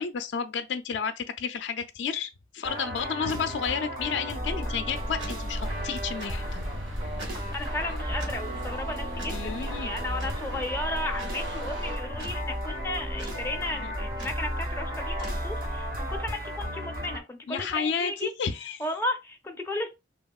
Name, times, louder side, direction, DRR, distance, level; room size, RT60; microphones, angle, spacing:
voice 1, 0.0-6.6 9.3-9.9 13.8-13.9 17.5-18.8, left 6 dB, 70° left, 0.3 m, -31 dB
sound 1, 2.6-17.2, equal, 50° right, 0.9 m, -35 dB
sound 2, 4.4-16.2, equal, 70° right, 1.4 m, -37 dB
sound 3, 4.9-12.0, right 2 dB, 90° right, 0.5 m, -41 dB
voice 2, 7.5-18.3 18.8-19.9, left 2 dB, 15° left, 0.5 m, -34 dB
2.8 x 2.8 x 2.3 m
head